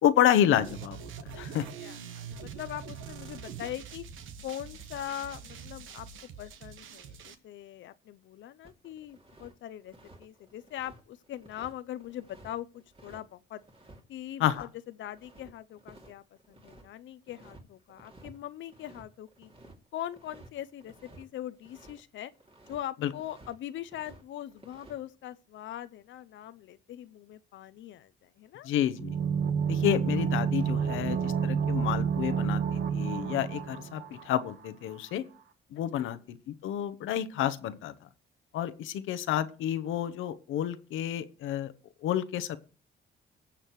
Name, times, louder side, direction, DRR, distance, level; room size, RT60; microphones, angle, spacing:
voice 1, 0.0-1.7 14.4-14.7 23.0-23.1 28.6-29.2 29.7-35.2 35.7-37.9 38.5-41.7 42.0-42.6, left 11 dB, 85° left, 0.9 m, -29 dB
sound 1, 0.6-7.3, right 7 dB, 80° right, 1.3 m, -44 dB
voice 2, 1.8-4.0 4.4-6.1 6.4-9.9 10.2-13.6 14.1-14.7 15.0-19.5 19.9-22.3 22.7-28.7 36.0-36.2, left 12 dB, 70° left, 0.6 m, -41 dB
sound 2, 8.6-9.5 9.8-14.0 14.4-14.7 14.9-16.9 17.3-17.6 17.9-18.4 18.6-22.0 22.3-22.8 23.1-24.2 24.5-25.0, right 1 dB, 30° right, 2.7 m, -54 dB
sound 3, 29.0-34.7 34.9-35.0, right 7 dB, 60° right, 1.3 m, -29 dB
20.0 x 7.4 x 3.1 m
cardioid pair, 90°, 20 cm